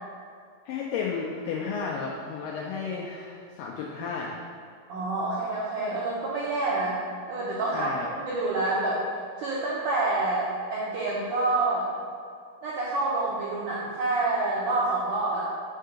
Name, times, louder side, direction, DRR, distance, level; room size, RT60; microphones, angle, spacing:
voice 1, 0.7-4.4 7.7-8.1, left 5 dB, 90° left, -2 dB, 1.9 m, -33 dB
voice 2, 4.9-7.0 7.3-7.9 8.2-9.0 9.4-11.9 12.6-15.5, right 2 dB, 80° right, -7 dB, 1.8 m, -27 dB
5.8 x 3.7 x 5.6 m, 2.2 s
omnidirectional pair, 4.5 m